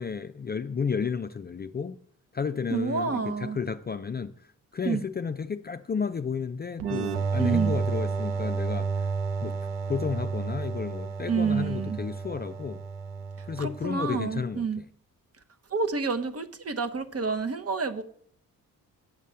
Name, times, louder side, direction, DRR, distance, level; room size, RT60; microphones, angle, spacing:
voice 1, 0.0-2.0 2.3-4.3 4.7-9.1 9.4-9.6 9.9-12.8 13.5-14.8, left 6 dB, 25° left, 0.4 m, -32 dB
voice 2, 2.7-3.6 4.8-5.0 7.4-7.8 11.3-12.0 13.6-14.8 15.7-18.0, right 5 dB, 35° right, 1.0 m, -28 dB
sound 1, 6.8-14.3, right 5 dB, 90° right, 0.9 m, -31 dB
7.5 x 5.4 x 7.4 m
supercardioid pair, 45°, 40 cm